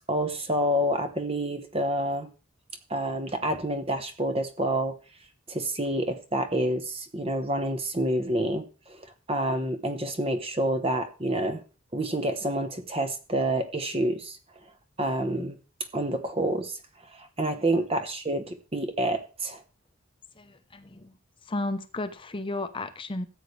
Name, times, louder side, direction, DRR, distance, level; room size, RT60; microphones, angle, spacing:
voice 1, 0.1-2.3 2.9-4.9 5.5-8.6 8.9-9.0 9.3-11.6 11.9-14.4 15.0-15.6 15.9-16.7 17.2-19.6, right 1 dB, 30° right, 8 dB, 1.0 m, -28 dB
voice 2, 20.4-21.1 21.5-23.3, left 2 dB, 25° left, 9 dB, 0.8 m, -33 dB
14.0 x 8.3 x 3.3 m, 0.34 s
head